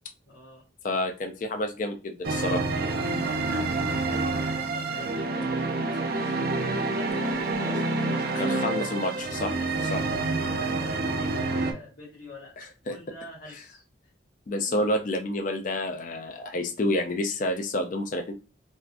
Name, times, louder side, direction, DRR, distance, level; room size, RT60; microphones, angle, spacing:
voice 1, 0.3-0.6 3.2-6.5 6.9-8.8 9.6-14.1 14.6-14.8, left 2 dB, 65° left, -8 dB, 1.1 m, -47 dB
voice 2, 0.8-2.6 8.4-9.6 9.9-10.0 12.6-13.0 14.5-18.3, left 1 dB, 40° left, 6 dB, 0.3 m, -29 dB
sound 1, 2.2-11.7, right 3 dB, 50° right, 0.5 m, -28 dB
3.5 x 2.4 x 2.4 m, 0.32 s
head